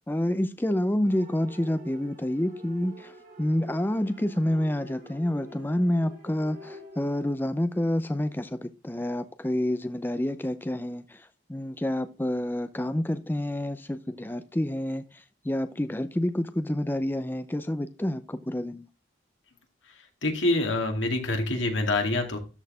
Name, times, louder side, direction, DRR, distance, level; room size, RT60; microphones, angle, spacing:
voice 1, 0.1-18.9, left 1 dB, 10° left, 0.5 m, -28 dB
sound 1, 1.0-7.3, right 1 dB, 45° right, 2.4 m, -47 dB
voice 2, 20.2-22.4, left 2 dB, 90° left, 2.3 m, -26 dB
13.0 x 4.5 x 3.5 m
head